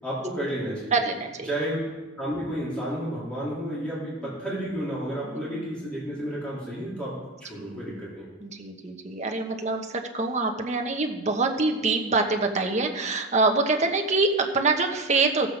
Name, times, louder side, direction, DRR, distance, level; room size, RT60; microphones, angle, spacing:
voice 1, 0.0-0.9 1.5-1.8 2.2-7.2 7.5-8.3, equal, 5° left, -8 dB, 3.6 m, -31 dB
voice 2, 0.9-1.5 3.8-4.4 5.2-5.6 7.6-8.1 8.4-15.5, right 3 dB, 35° right, 4 dB, 1.1 m, -26 dB
15.5 x 7.6 x 5.2 m, 1.2 s
head